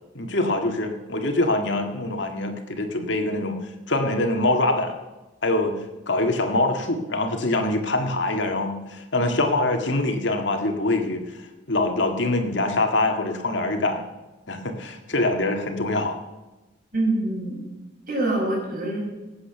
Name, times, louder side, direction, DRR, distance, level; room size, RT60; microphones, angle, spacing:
voice 1, 0.2-3.6 3.9-5.0 5.4-5.8 6.1-11.2 11.7-14.0 14.5-16.2, left 2 dB, 70° left, 5 dB, 1.9 m, -24 dB
voice 2, 16.9-17.6 18.1-19.0, right 2 dB, 45° right, -2 dB, 5.8 m, -25 dB
18.5 x 8.7 x 6.8 m, 1.1 s
head